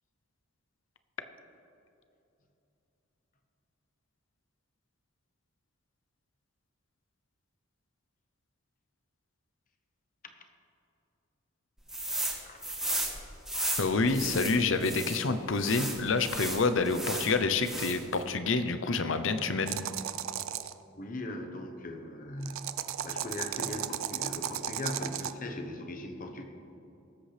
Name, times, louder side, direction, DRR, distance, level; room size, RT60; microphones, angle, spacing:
sound 1, 11.9-12.4 12.6-15.2 15.6-17.3 17.6-18.1, right 1 dB, 5° right, 1.5 m, -34 dB
voice 1, 12.4-12.8 21.0-22.7 23.0-26.4, left 1 dB, 40° left, 5 dB, 1.1 m, -39 dB
voice 2, 13.8-19.8, left 4 dB, 70° left, 10 dB, 0.7 m, -28 dB
sound 2, 19.7-20.7 22.4-25.3, right 10 dB, 85° right, 0.5 m, -35 dB
19.0 x 8.1 x 3.4 m, 2.8 s
head